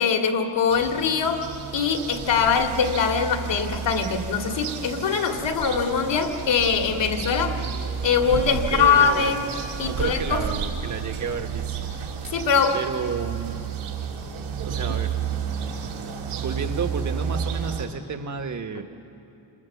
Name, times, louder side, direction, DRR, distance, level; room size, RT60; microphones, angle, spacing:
voice 1, 0.0-1.4 1.7-7.5 8.0-9.5 9.8-10.4 12.3-12.8, left 6 dB, 65° left, 3 dB, 2.3 m, -22 dB
sound 1, 0.7-17.9, right 7 dB, 90° right, 3.3 m, -31 dB
voice 2, 7.4-7.8 8.3-9.4 9.8-11.9 12.7-13.6 14.6-15.2 16.4-18.8, right 5 dB, 35° right, 6 dB, 1.5 m, -31 dB
28.5 x 26.5 x 7.3 m, 2.8 s
wide cardioid pair, 170°, 48 cm